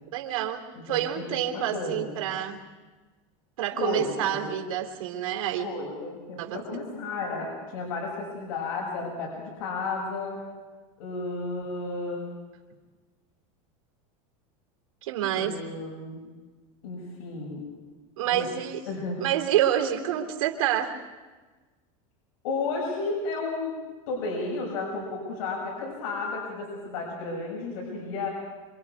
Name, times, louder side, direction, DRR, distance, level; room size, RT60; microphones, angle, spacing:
voice 1, 0.1-2.6 3.6-5.7 6.4-6.6 15.0-15.6 18.2-18.8 19.2-21.0, right 11 dB, 90° right, 3 dB, 3.1 m, -28 dB
voice 2, 0.9-2.1 3.8-4.5 5.6-10.4 11.0-12.2 15.3-16.3 16.8-17.6 18.2-18.5 18.9-19.2 22.4-23.7 24.1-28.3, left 3 dB, 80° left, -2 dB, 6.6 m, -33 dB
27.0 x 24.5 x 4.8 m, 1.3 s
supercardioid pair, 140°, 17 cm